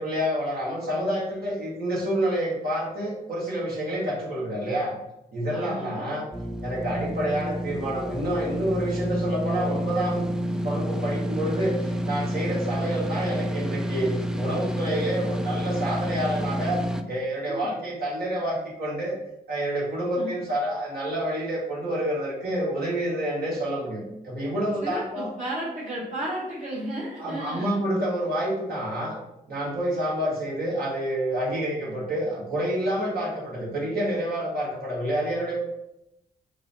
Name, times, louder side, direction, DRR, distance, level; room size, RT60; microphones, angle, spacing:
voice 1, 0.0-4.9 5.3-6.2 6.6-16.8 17.1-19.2 19.5-25.3 27.2-29.2 29.5-35.6, right 1 dB, 65° right, -5 dB, 1.4 m, -28 dB
voice 2, 5.5-6.0 17.5-17.7 20.2-20.4 24.8-27.8, right 1 dB, 45° right, -8 dB, 1.1 m, -33 dB
sound 1, 6.3-17.0, equal, 5° right, 0.3 m, -29 dB
3.7 x 2.0 x 4.1 m, 0.86 s
supercardioid pair, 45°, 17 cm